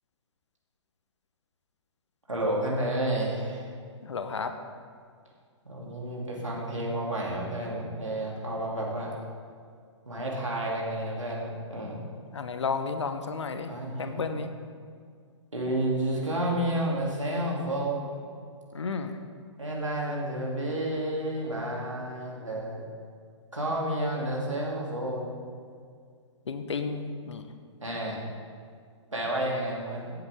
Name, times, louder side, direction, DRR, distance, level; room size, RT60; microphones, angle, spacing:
voice 1, 2.3-3.7 5.6-9.1 10.1-12.1 13.7-14.2 15.5-18.2 19.6-22.8 23.5-25.3 27.8-28.2 29.1-30.1, right 1 dB, 85° right, -3 dB, 2.8 m, -30 dB
voice 2, 4.0-4.5 12.3-13.7 14.0-14.5 18.7-19.2 26.5-27.5, left 5 dB, 70° left, 8 dB, 1.0 m, -32 dB
15.0 x 7.9 x 3.6 m, 2.1 s
figure-of-eight pair, 120°, 16 cm